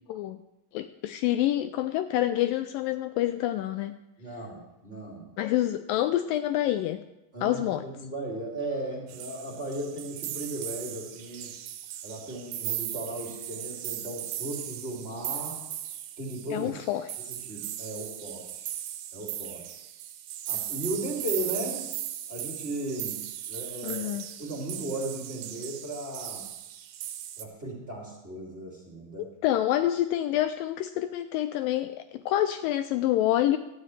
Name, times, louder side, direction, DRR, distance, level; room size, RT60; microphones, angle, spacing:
voice 1, 0.7-4.0 5.4-7.0 7.4-7.8 16.5-17.1 23.8-24.3 29.4-32.0 32.3-33.6, left 13 dB, 80° left, 10 dB, 2.1 m, -27 dB
voice 2, 4.2-5.3 7.3-11.6 12.0-15.7 16.2-16.7 17.3-18.7 19.1-19.6 20.5-21.9 22.3-23.2 23.5-24.0 24.4-26.4 27.4-29.3, right 1 dB, 20° right, -3 dB, 2.7 m, -36 dB
sound 1, 9.1-27.5, right 12 dB, 80° right, 2.6 m, -37 dB
17.5 x 13.0 x 3.3 m, 0.92 s
omnidirectional pair, 4.2 m